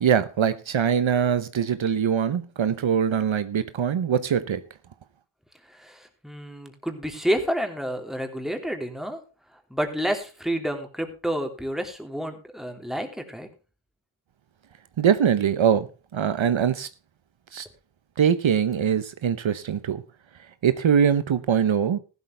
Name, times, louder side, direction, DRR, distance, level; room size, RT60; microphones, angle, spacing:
voice 1, 0.0-4.6 15.0-15.9 16.1-16.9 17.5-17.7 18.2-20.0 20.6-22.0, right 8 dB, 70° right, 0.9 m, -22 dB
voice 2, 5.7-9.2 9.5-13.5, equal, ahead, 3.0 m, -29 dB
14.5 x 12.0 x 3.3 m
wide cardioid pair, 60°, 47 cm